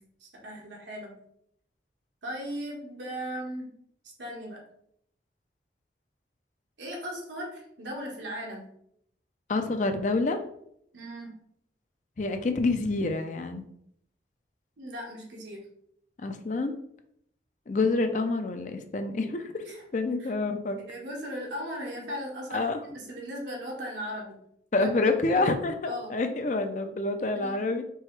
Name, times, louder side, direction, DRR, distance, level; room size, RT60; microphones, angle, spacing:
voice 1, 0.2-1.1 2.2-3.7 4.2-4.6 6.8-8.6 10.9-11.4 14.8-15.6 19.6-19.8 20.2-20.3 20.9-24.4 24.8-24.9 25.3-25.4 25.9-26.1 27.3-27.6, equal, 90° right, -2 dB, 1.5 m, -37 dB
voice 2, 9.5-10.4 12.2-13.7 16.2-16.8 17.7-19.5 19.9-20.8 22.5-22.8 24.7-27.8, left 3 dB, 45° left, 7 dB, 0.5 m, -27 dB
4.6 x 3.4 x 3.2 m, 0.71 s
head